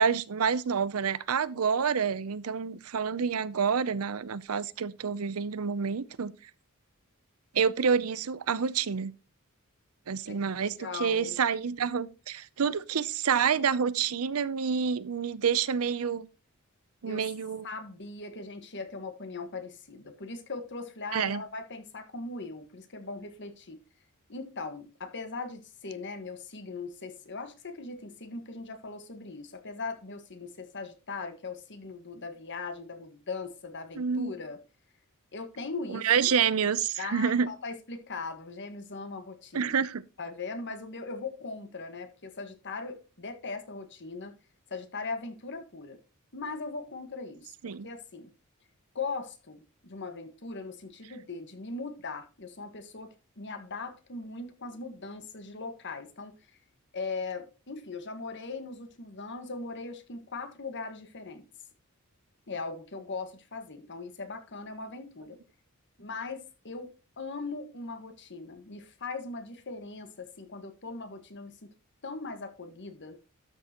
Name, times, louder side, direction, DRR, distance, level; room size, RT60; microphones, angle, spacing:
voice 1, 0.0-6.3 7.5-9.1 10.1-16.3 17.0-17.7 21.1-21.4 34.0-34.3 35.9-37.5 39.5-40.0 47.6-47.9, right 6 dB, 75° right, 0.6 m, -28 dB
voice 2, 10.3-11.4 17.0-17.3 17.6-23.8 24.3-34.6 35.3-36.3 37.0-39.7 40.2-44.4 44.7-46.0 46.3-48.3 48.9-53.1 53.4-56.6 56.9-61.4 62.5-65.4 66.0-71.7 72.0-73.2, left 3 dB, 55° left, 1.6 m, -39 dB
12.5 x 6.7 x 3.0 m
head